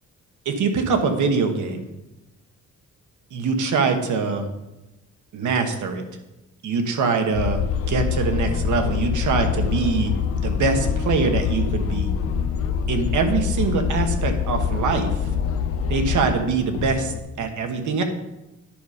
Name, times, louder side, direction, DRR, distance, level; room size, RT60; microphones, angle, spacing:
voice 1, 0.4-1.9 3.3-4.5 5.3-6.0 6.6-7.6 7.9-10.1 10.4-12.1 12.9-15.1 15.9-18.0, right 4 dB, 85° right, 6 dB, 1.2 m, -23 dB
sound 1, 7.3-16.3, left 7 dB, 50° left, 0.5 m, -25 dB
sound 2, 8.0-17.2, left 4 dB, 85° left, 0.7 m, -34 dB
10.0 x 5.3 x 5.0 m, 0.99 s
wide cardioid pair, 175°, 29 cm